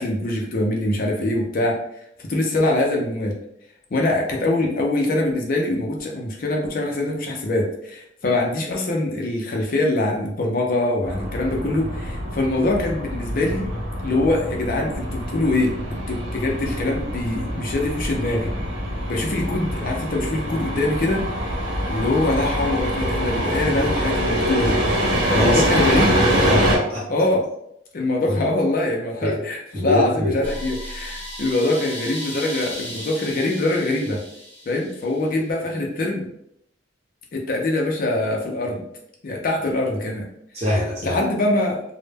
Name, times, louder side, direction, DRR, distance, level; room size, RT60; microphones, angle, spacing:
voice 1, 0.0-1.8 2.2-3.4 3.9-13.7 14.0-18.5 19.1-21.2 21.9-24.8 25.3-26.5 27.1-27.5 27.9-34.2 34.7-36.2 37.3-38.8 39.2-40.3 41.0-41.8, left 2 dB, 45° left, 0 dB, 0.4 m, -23 dB
sound 1, 11.0-26.8, equal, 70° right, 0.7 m, -24 dB
voice 2, 26.5-27.0 28.3-28.4 29.2-29.4 29.7-30.3 40.5-41.2, left 1 dB, 30° right, -4 dB, 0.8 m, -23 dB
sound 2, 30.4-35.3, equal, 10° left, 0.7 m, -35 dB
2.1 x 2.0 x 3.3 m, 0.76 s
head